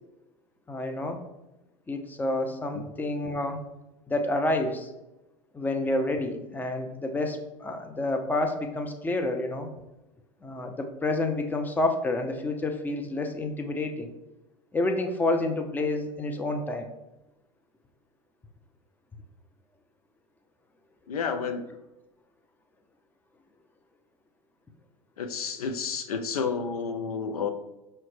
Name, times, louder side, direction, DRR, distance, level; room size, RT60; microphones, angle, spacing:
voice 1, 0.7-1.2 1.9-3.6 4.1-4.9 5.5-9.7 10.4-14.1 14.7-16.9, left 2 dB, 10° left, 5 dB, 0.5 m, -29 dB
voice 2, 21.1-21.7 25.2-27.5, left 5 dB, 85° left, 8 dB, 0.4 m, -30 dB
5.5 x 2.1 x 3.1 m, 0.98 s
hypercardioid pair, 85°, 18 cm